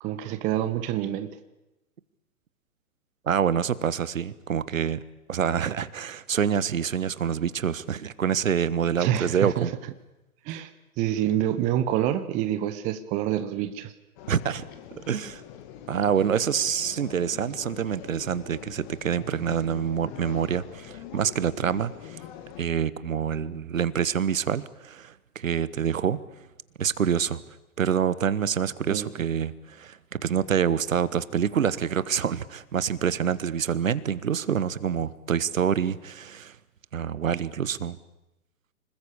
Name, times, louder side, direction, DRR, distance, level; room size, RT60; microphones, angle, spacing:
voice 1, 0.0-1.4 9.0-9.7 10.4-10.7 11.0-13.9 28.9-29.1, right 11 dB, 15° right, 11 dB, 0.9 m, -27 dB
voice 2, 3.3-5.0 5.3-9.7 14.3-14.7 15.0-15.4 15.9-22.2 22.6-26.2 26.8-27.4 27.8-36.5 36.9-38.0, right 8 dB, 60° right, 18 dB, 1.3 m, -26 dB
sound 1, 14.2-22.6, left 10 dB, 30° left, 2.4 m, -44 dB
25.5 x 20.5 x 8.5 m, 0.96 s
figure-of-eight pair, 125°, 44 cm